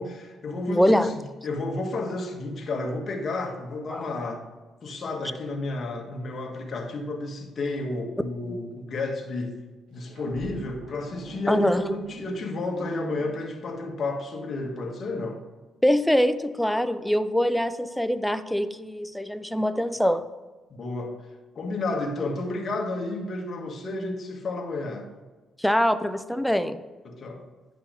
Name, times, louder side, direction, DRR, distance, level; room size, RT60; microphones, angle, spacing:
voice 1, 0.0-4.4 4.8-9.6 9.9-15.4 20.7-21.2 21.5-25.1 27.0-27.4, left 2 dB, 50° left, 2 dB, 1.6 m, -31 dB
voice 2, 0.7-1.1 3.9-4.0 8.5-8.6 11.5-11.9 15.8-20.3 25.6-26.8, equal, 5° left, 12 dB, 0.5 m, -23 dB
sound 1, 9.9-14.1, right 3 dB, 85° right, 2.0 m, -43 dB
10.5 x 5.5 x 3.9 m, 1.3 s
cardioid pair, 90°, 0 cm